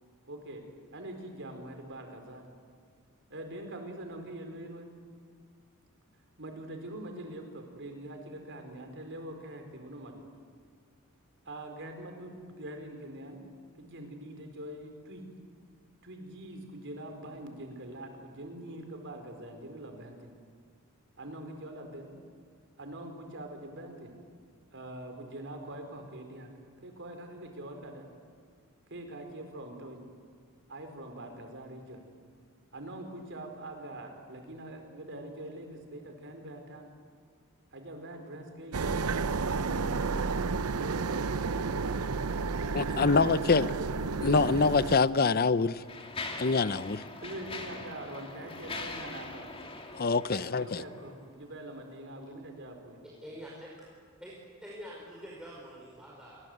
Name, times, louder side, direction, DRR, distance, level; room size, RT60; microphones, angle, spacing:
voice 1, 0.3-0.6 0.9-2.5 3.3-4.9 6.4-10.3 11.4-13.4 13.8-15.2 16.0-20.3 21.2-22.1 22.8-24.1 24.7-26.5 26.8-28.1 28.9-30.0 30.7-32.0 32.7-36.9 37.7-40.4 40.7-44.4 47.2-49.5 50.3-52.9, right 1 dB, 55° right, 5 dB, 4.6 m, -44 dB
sound 1, 38.7-45.0, right 4 dB, 85° right, 0.7 m, -31 dB
voice 2, 42.7-43.7 44.2-45.8 46.4-47.0 49.9-50.8, left 4 dB, 45° left, 16 dB, 0.7 m, -25 dB
Mechanisms, 44.6-44.7 45.4-51.1, left 3 dB, 25° left, 2.8 m, -42 dB
voice 3, 53.2-53.7 54.2-54.3 54.6-56.4, equal, 5° right, -5 dB, 5.1 m, -45 dB
29.5 x 22.5 x 8.0 m, 2.1 s
head